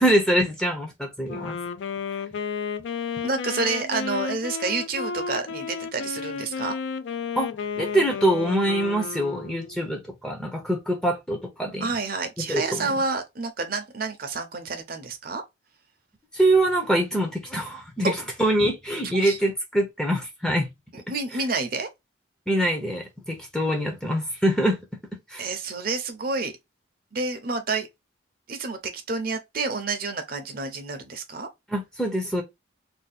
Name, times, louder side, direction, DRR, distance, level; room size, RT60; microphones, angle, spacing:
voice 1, 0.0-1.6 7.4-7.5 7.8-11.9 12.4-12.9 16.3-20.7 22.5-24.8 25.3-25.5 31.7-32.4, right 1 dB, 5° left, 0.5 m, -24 dB
Wind instrument woodwind instrument, 1.3-9.9, left 5 dB, 60° left, 0.3 m, -32 dB
voice 2, 3.2-6.7 11.8-15.4 18.0-18.1 19.1-19.4 20.9-21.9 25.4-26.5 27.1-27.9 28.5-31.5, right 3 dB, 45° right, 0.6 m, -29 dB
2.7 x 2.2 x 4.0 m
head